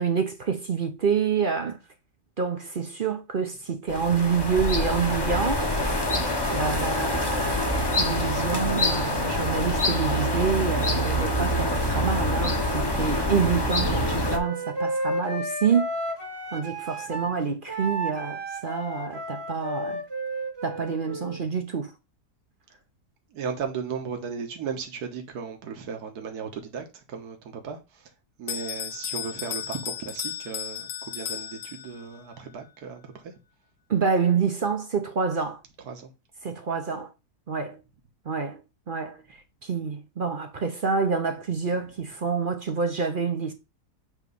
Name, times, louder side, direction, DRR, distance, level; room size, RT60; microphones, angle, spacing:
voice 1, 0.0-1.8 2.4-5.7 6.5-15.9 16.5-20.0 20.6-21.9 33.9-35.6 36.4-37.1 37.5-37.8 38.3-38.6 38.9-39.2 39.6-43.5, right 6 dB, 50° right, 0.6 m, -27 dB
sound 1, 3.9-14.4, left 1 dB, 20° left, 0.9 m, -25 dB
Wind instrument woodwind instrument, 13.8-17.3 17.7-21.4, right 1 dB, 20° right, 1.0 m, -33 dB
voice 2, 23.3-28.1 28.4-33.3 35.8-36.1, right 6 dB, 70° right, 1.7 m, -36 dB
Bell, 28.5-32.2, left 9 dB, 60° left, 1.1 m, -35 dB
8.2 x 3.0 x 5.3 m
omnidirectional pair, 1.7 m